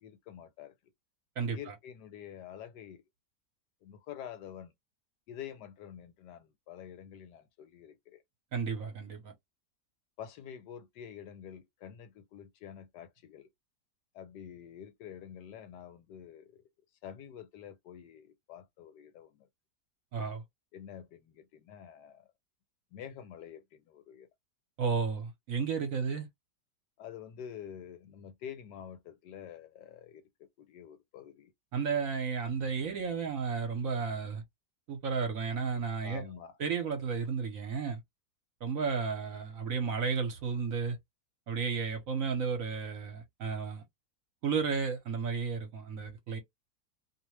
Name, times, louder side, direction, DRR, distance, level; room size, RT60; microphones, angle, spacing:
voice 1, 0.0-0.7 1.5-3.0 3.8-4.7 5.3-8.2 10.2-13.5 14.1-16.7 17.0-19.5 20.7-22.3 22.9-24.3 27.0-31.5 36.0-36.6, left 9 dB, 80° left, 1.2 m, -47 dB
voice 2, 1.4-1.7 8.5-9.3 20.1-20.4 24.8-26.3 31.7-34.4 34.9-36.2 36.6-38.0 38.6-41.0 41.5-43.8 44.4-46.4, right 5 dB, 60° right, 1.0 m, -33 dB
2.7 x 2.1 x 3.0 m
omnidirectional pair, 1.9 m